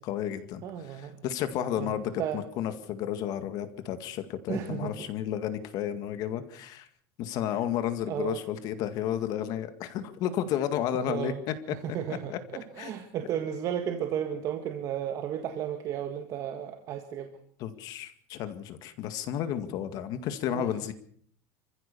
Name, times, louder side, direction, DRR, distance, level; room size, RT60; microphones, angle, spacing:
voice 1, 0.0-6.9 7.2-11.8 12.3-12.4 12.8-12.9 17.6-20.9, left 10 dB, 45° left, 10 dB, 2.0 m, -32 dB
voice 2, 0.6-1.2 1.8-2.4 4.5-4.9 8.1-8.4 10.9-11.4 11.8-17.3 20.5-20.6, right 9 dB, 40° right, 6 dB, 1.8 m, -34 dB
26.5 x 15.5 x 7.0 m, 0.63 s
cardioid pair, 160°, 9 cm